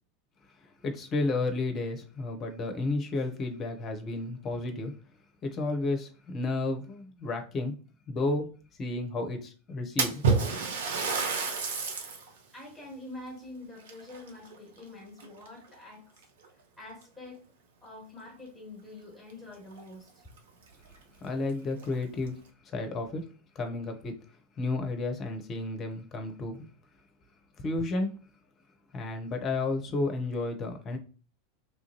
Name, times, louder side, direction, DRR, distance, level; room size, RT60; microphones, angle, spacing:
voice 1, 0.8-4.9 5.4-7.7 8.1-8.5 8.8-10.2 21.2-23.2 23.5-24.2 24.6-26.7 27.6-28.1 28.9-31.0, left 2 dB, 30° left, 0.7 m, -32 dB
Splash splatter, 10.0-12.3 12.8-12.9 13.8-14.8 15.2-15.6 16.4-16.5 17.0-17.1 19.3-19.4 19.7-19.8 20.4-20.5 20.9-21.0 21.7-22.3, right 5 dB, 60° right, 0.6 m, -29 dB
voice 2, 12.5-16.2 16.8-17.4 17.8-20.3, left 2 dB, 10° left, 1.4 m, -46 dB
3.1 x 2.5 x 2.9 m
figure-of-eight pair, 80°, 0 cm